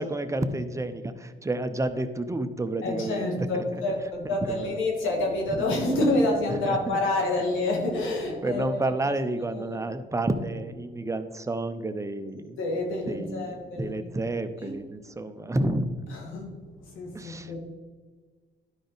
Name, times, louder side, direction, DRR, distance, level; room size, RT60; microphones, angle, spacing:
voice 1, 0.0-3.8 4.2-4.8 5.5-5.9 6.5-7.0 7.3-7.4 8.4-12.6 13.0-16.0 17.1-17.6, right 2 dB, 15° right, 9 dB, 0.7 m, -30 dB
voice 2, 2.8-8.8 12.6-14.0 14.6-14.7 16.1-16.5 16.9-17.6, left 2 dB, 85° left, 1 dB, 2.1 m, -27 dB
11.5 x 5.0 x 4.0 m, 1.4 s
cardioid pair, 90°, 20 cm